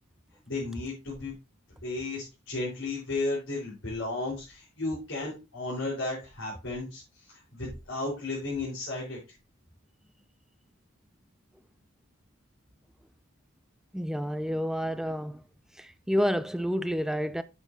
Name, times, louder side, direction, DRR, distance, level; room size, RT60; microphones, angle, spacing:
voice 1, 0.5-1.3 1.8-9.2, left 2 dB, 70° left, 4.4 m, -34 dB
voice 2, 13.9-15.4 15.8-17.4, equal, ahead, 0.3 m, -29 dB
9.2 x 7.6 x 2.7 m
head